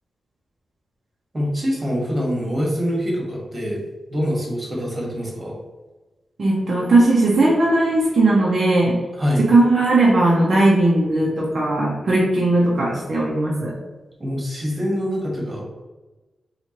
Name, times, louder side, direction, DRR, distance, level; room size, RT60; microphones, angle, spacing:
voice 1, 1.3-3.8 4.1-5.5 9.1-9.4 14.2-15.6, equal, 30° right, -3 dB, 1.4 m, -24 dB
voice 2, 6.4-9.0 9.4-13.7, right 2 dB, 60° right, -4 dB, 0.7 m, -17 dB
4.4 x 2.4 x 2.9 m, 1.2 s
cardioid pair, 75°, 0 cm